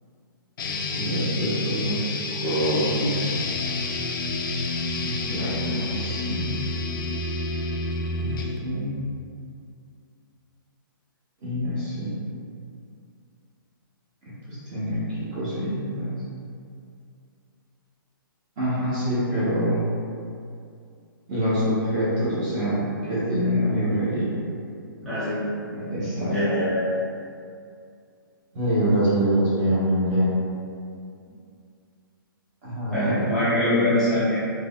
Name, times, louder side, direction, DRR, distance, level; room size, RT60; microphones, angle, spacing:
sound 1, 0.6-8.6, left 3 dB, 65° left, 0.4 m, -29 dB
voice 1, 0.9-2.0 2.4-3.3 5.0-6.5 8.2-9.0 11.4-12.1 14.5-16.2 18.6-19.8 21.3-24.4 25.7-26.3 28.5-30.3 32.6-33.2, equal, 25° right, -10 dB, 0.9 m, -25 dB
voice 2, 25.0-25.4 26.3-26.9 32.9-34.4, left 1 dB, 5° left, -14 dB, 0.8 m, -23 dB
3.6 x 2.0 x 2.3 m, 2.4 s
hypercardioid pair, 155°, 12 cm